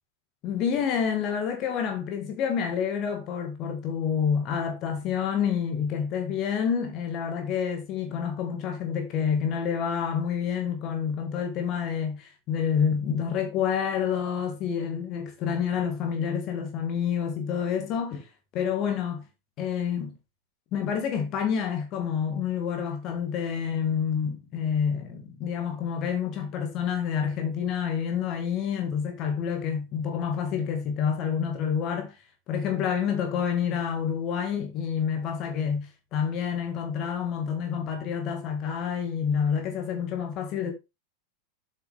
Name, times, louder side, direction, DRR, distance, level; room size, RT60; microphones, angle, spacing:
voice 1, 0.4-18.3 18.5-19.2 19.6-20.2 20.7-32.2 32.5-35.9 36.1-40.7, left 7 dB, 35° left, 2.0 m, -28 dB
8.1 x 6.6 x 3.6 m
figure-of-eight pair, 90°, 0 cm